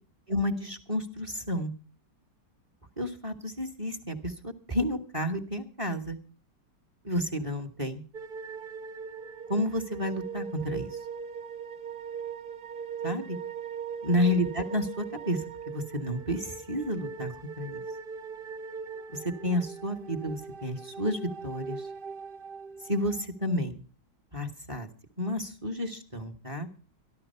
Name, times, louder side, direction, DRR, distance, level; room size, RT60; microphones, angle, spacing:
voice 1, 0.3-1.7 3.0-6.2 7.0-8.0 9.5-11.0 13.0-13.4 14.0-17.8 19.1-21.9 22.9-23.8 24.3-24.9 25.2-26.7, left 1 dB, 20° right, 7 dB, 1.1 m, -31 dB
sound 1, 8.1-23.3, right 6 dB, 50° right, 0.6 m, -40 dB
14.0 x 12.5 x 5.5 m, 0.37 s
omnidirectional pair, 2.0 m